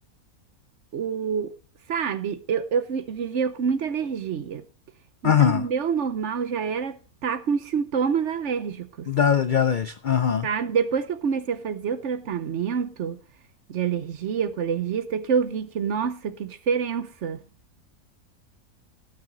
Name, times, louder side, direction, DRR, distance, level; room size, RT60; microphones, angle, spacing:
voice 1, 0.9-1.5 1.9-4.6 5.2-9.1 10.4-13.2 13.7-17.4, right 6 dB, 60° right, 1.0 m, -27 dB
voice 2, 5.2-5.6 9.1-10.5, left 8 dB, 65° left, 0.4 m, -21 dB
17.0 x 6.0 x 3.9 m
omnidirectional pair, 1.6 m